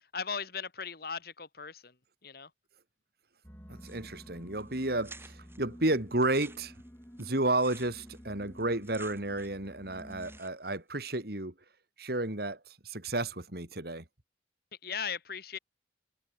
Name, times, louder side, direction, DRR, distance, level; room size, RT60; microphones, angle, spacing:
voice 1, 0.1-1.9 2.2-2.5 14.8-15.6, left 6 dB, 55° left, 2.3 m, -37 dB
sound 1, 3.4-10.4, equal, 10° left, 4.2 m, -51 dB
voice 2, 3.7-6.7 7.2-11.5 12.0-14.0, right 2 dB, 55° right, 3.1 m, -32 dB
sound 2, 3.8-4.3 4.6-4.7 5.0-5.6 6.1-9.7 9.9-10.8, right 3 dB, 15° right, 4.4 m, -53 dB
head